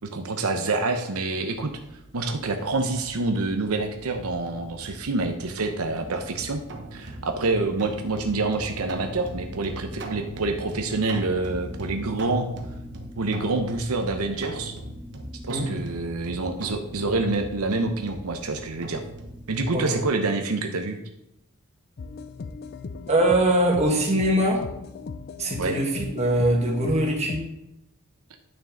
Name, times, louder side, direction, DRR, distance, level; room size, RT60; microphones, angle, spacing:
voice 1, 0.0-1.7 2.1-6.6 6.9-12.5 13.2-14.8 15.5-19.0 19.5-21.0 25.6-25.8, right 3 dB, 85° right, 5 dB, 0.8 m, -27 dB
sound 1, 1.5-20.0, right 1 dB, 55° right, 1.1 m, -40 dB
voice 2, 19.7-20.0 23.1-24.6 25.4-27.4, right 1 dB, 30° right, -1 dB, 1.7 m, -22 dB
sound 2, 22.0-27.5, left 4 dB, 45° left, 0.4 m, -38 dB
9.1 x 6.1 x 3.8 m, 0.87 s
head